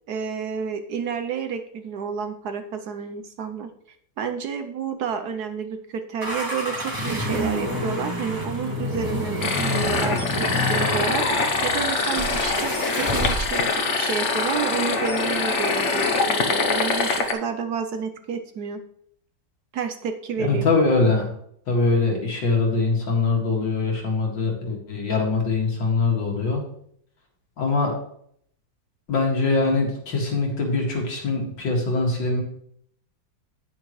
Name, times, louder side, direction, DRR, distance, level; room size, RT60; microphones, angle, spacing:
voice 1, 0.1-18.8 19.7-20.7, right 6 dB, 65° right, 8 dB, 1.1 m, -30 dB
sound 1, 6.2-13.8, equal, 10° right, 2.1 m, -28 dB
sound 2, 9.4-17.3, left 4 dB, 45° left, 1.1 m, -24 dB
voice 2, 20.5-21.3 21.7-26.6 27.6-27.9 29.1-32.4, left 3 dB, 75° left, 0 dB, 2.8 m, -22 dB
9.5 x 9.3 x 3.2 m, 0.67 s
omnidirectional pair, 2.0 m